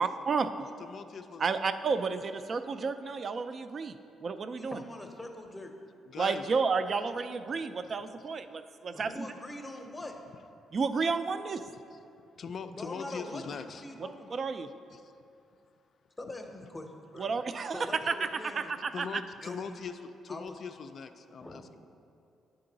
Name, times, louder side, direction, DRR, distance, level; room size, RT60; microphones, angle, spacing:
voice 1, 0.0-0.7 1.4-3.9 4.2-4.8 6.2-9.1 10.7-11.6 14.3-14.7 17.2-18.3 18.6-19.2, right 4 dB, 45° right, 10 dB, 0.3 m, -31 dB
voice 2, 0.8-1.4 6.1-6.5 7.8-7.9 11.9-12.0 12.4-13.8 14.9-15.1 18.9-21.8, left 5 dB, 55° left, 9 dB, 0.3 m, -41 dB
voice 3, 4.5-5.7 8.9-10.2 12.7-14.4 16.2-17.3 17.7-18.7 19.4-19.8 20.3-20.5 21.4-21.8, left 1 dB, 15° left, 4 dB, 0.7 m, -43 dB
9.5 x 3.8 x 3.9 m, 2.6 s
cardioid pair, 90°, 0 cm